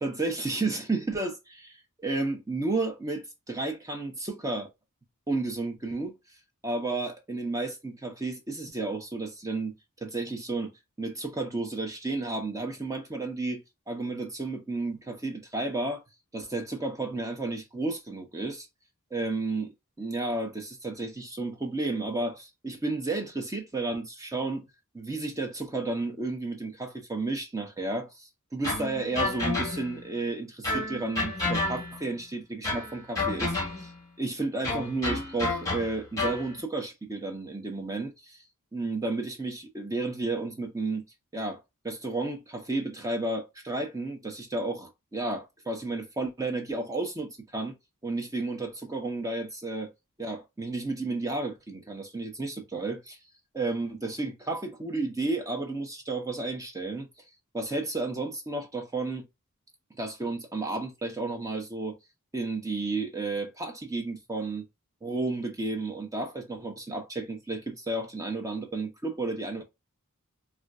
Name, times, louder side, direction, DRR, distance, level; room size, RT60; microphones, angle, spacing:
voice 1, 0.0-4.7 5.3-6.1 6.6-9.7 10.0-10.7 11.0-16.0 16.3-18.7 19.1-19.7 20.0-24.7 24.9-28.1 28.5-33.9 34.2-38.4 38.7-41.0 41.3-41.6 41.8-47.7 48.0-49.9 50.2-53.2 53.5-57.1 57.5-59.2 60.0-62.0 62.3-64.6 65.0-69.6, right 2 dB, 15° right, 0.6 m, -32 dB
sound 1, 28.6-30.1 30.6-32.1 32.6-34.0 34.6-36.5, left 2 dB, 15° left, 1.2 m, -30 dB
3.7 x 2.2 x 2.3 m
head